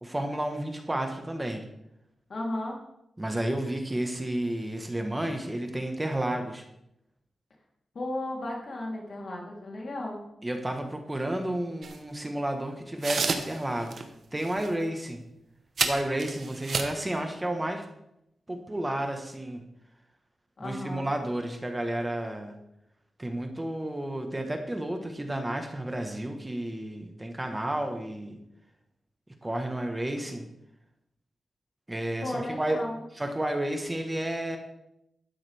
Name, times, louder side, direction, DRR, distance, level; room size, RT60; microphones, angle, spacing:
voice 1, 0.0-1.6 3.2-6.6 10.4-14.0 14.3-15.2 15.8-17.9 18.5-19.6 20.6-22.5 23.2-28.4 29.4-30.5 31.9-32.8 33.2-34.6, right 1 dB, 15° right, 4 dB, 1.4 m, -31 dB
voice 2, 2.3-2.8 7.9-10.2 20.6-21.1 32.2-33.0, left 1 dB, 55° left, -2 dB, 3.4 m, -34 dB
sound 1, 11.8-12.0 13.0-13.6 13.9-14.0 14.4-14.7 15.8-17.0, right 4 dB, 60° right, 1.2 m, -30 dB
12.5 x 10.5 x 3.5 m, 0.83 s
cardioid pair, 90°, 0 cm